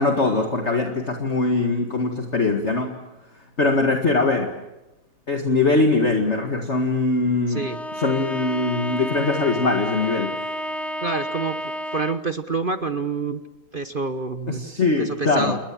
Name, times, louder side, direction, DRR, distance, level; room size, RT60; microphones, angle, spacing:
voice 1, 0.0-2.9 3.6-4.5 5.3-7.6 7.9-10.4 14.5-15.6, left 3 dB, 30° left, 3 dB, 2.0 m, -22 dB
Bowed string instrument, 7.5-12.4, equal, ahead, 1.1 m, -31 dB
voice 2, 7.5-7.8 11.0-13.4 13.7-14.6 15.0-15.6, right 4 dB, 40° right, 9 dB, 0.8 m, -27 dB
29.0 x 21.5 x 7.5 m, 0.98 s
omnidirectional pair, 2.4 m